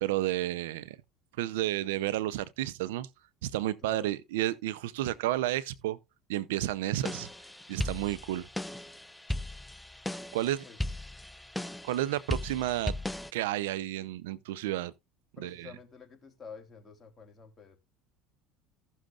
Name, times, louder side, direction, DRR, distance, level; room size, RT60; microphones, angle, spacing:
voice 1, 0.0-1.0 1.4-3.1 3.4-6.0 6.3-7.3 7.7-8.5 10.3-10.6 11.8-12.9 13.3-14.9 15.4-15.7, right 14 dB, 85° right, 0.6 m, -31 dB
voice 2, 3.8-4.1 10.3-10.9 15.4-17.8, left 5 dB, 20° left, 3.4 m, -49 dB
sound 1, 6.9-13.3, left 1 dB, 5° left, 0.4 m, -37 dB
16.0 x 6.4 x 2.5 m
supercardioid pair, 100°, 0 cm